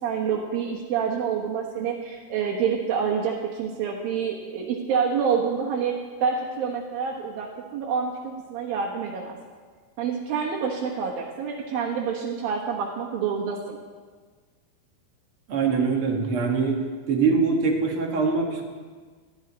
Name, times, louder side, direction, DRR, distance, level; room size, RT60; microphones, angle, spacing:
voice 1, 0.0-5.9 6.2-9.4 10.0-13.8, right 6 dB, 80° right, -3 dB, 3.0 m, -27 dB
voice 2, 15.5-16.8 17.1-18.6, right 5 dB, 50° right, 1 dB, 1.9 m, -23 dB
18.5 x 14.0 x 4.1 m, 1.5 s
omnidirectional pair, 4.1 m